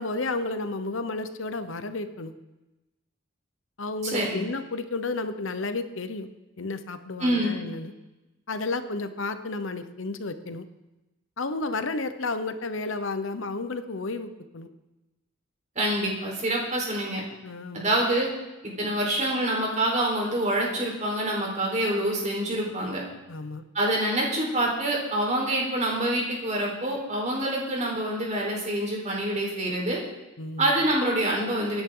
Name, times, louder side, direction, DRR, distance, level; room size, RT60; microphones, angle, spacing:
voice 1, 0.0-2.3 3.8-6.3 6.6-7.9 8.5-10.7 11.4-14.7 17.4-17.9 23.3-23.6 30.4-30.7, left 3 dB, 70° left, 10 dB, 1.0 m, -32 dB
voice 2, 4.0-4.4 7.2-7.6 15.8-17.2 17.7-18.3 18.6-23.0 23.7-30.0 30.6-31.8, right 1 dB, 35° right, -2 dB, 4.3 m, -26 dB
24.5 x 10.0 x 3.9 m, 1.0 s
head